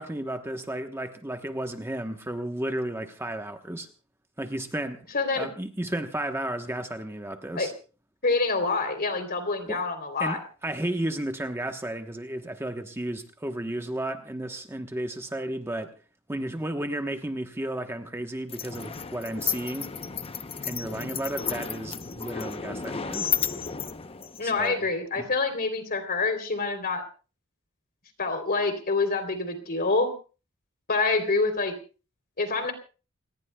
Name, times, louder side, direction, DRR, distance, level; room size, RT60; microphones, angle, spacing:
voice 1, 0.0-3.9 4.4-5.0 5.3-7.7 9.7-9.8 10.2-15.9 16.3-19.9 20.6-23.3 24.4-24.9 25.2-25.3, right 1 dB, 10° right, 5 dB, 1.0 m, -33 dB
voice 2, 5.1-5.5 7.5-7.7 8.2-10.4 24.4-27.0 28.2-30.1 30.9-31.7 32.4-32.7, left 3 dB, 45° left, 7 dB, 3.4 m, -26 dB
sound 1, 18.5-24.7, left 7 dB, 25° left, 0.7 m, -33 dB
28.5 x 19.0 x 2.3 m, 0.36 s
head